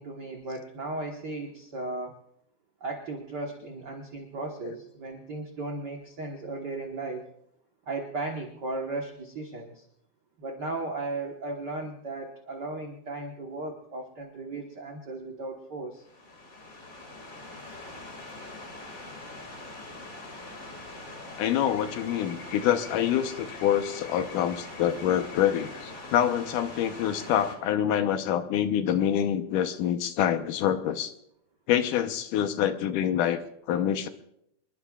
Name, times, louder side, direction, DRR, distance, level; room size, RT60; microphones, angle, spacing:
voice 1, 0.0-2.1 2.8-7.3 7.9-9.8 10.4-16.0, right 2 dB, 50° right, 1 dB, 1.3 m, -36 dB
sound 1, 16.0-27.6, left 2 dB, 30° left, 2.2 m, -42 dB
voice 2, 21.4-31.1 31.7-33.4 33.7-34.1, left 10 dB, 75° left, 8 dB, 2.5 m, -26 dB
26.5 x 22.0 x 2.4 m, 0.76 s
omnidirectional pair, 3.8 m